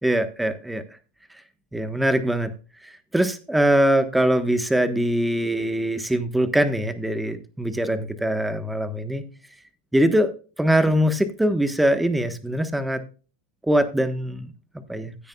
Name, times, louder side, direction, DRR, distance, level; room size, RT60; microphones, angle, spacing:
voice 1, 0.0-0.8 1.7-2.5 2.8-9.2 9.9-10.3 10.6-13.0 13.7-15.3, right 1 dB, 5° right, 1.3 m, -22 dB
16.0 x 8.7 x 2.4 m
supercardioid pair, 120°, 0 cm